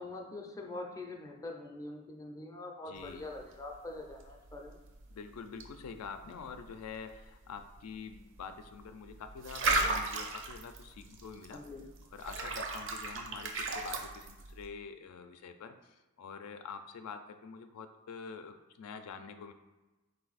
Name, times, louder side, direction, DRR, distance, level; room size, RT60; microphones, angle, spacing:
voice 1, 0.0-4.8 11.5-11.9, left 2 dB, 15° left, 1 dB, 0.4 m, -44 dB
voice 2, 2.9-3.3 5.1-11.6 12.1-19.5, left 5 dB, 85° left, 8 dB, 0.4 m, -46 dB
sound 1, 2.9-14.7, right 3 dB, 55° right, 0.5 m, -38 dB
4.2 x 2.6 x 4.0 m, 1.1 s
head